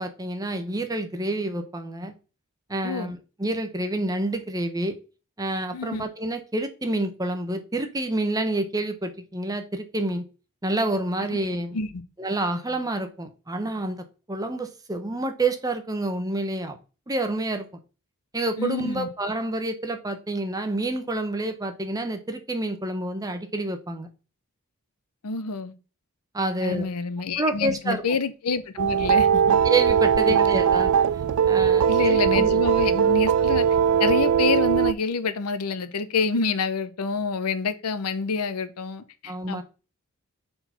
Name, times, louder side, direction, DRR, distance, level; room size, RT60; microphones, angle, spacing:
voice 1, 0.0-2.1 2.7-5.0 5.4-10.3 10.6-11.8 12.2-16.8 17.1-17.6 18.3-24.1 26.3-26.9 27.4-28.0 29.6-30.9 31.5-32.6 39.3-39.6, right 2 dB, 15° right, 0.8 m, -28 dB
voice 2, 5.7-6.0 11.7-11.9 18.6-19.1 25.2-25.7 26.6-29.6 30.3-30.5 31.9-33.7 34.0-39.6, left 4 dB, 85° left, 0.7 m, -27 dB
sound 1, 28.8-34.9, right 8 dB, 75° right, 0.3 m, -20 dB
4.7 x 3.9 x 5.5 m
head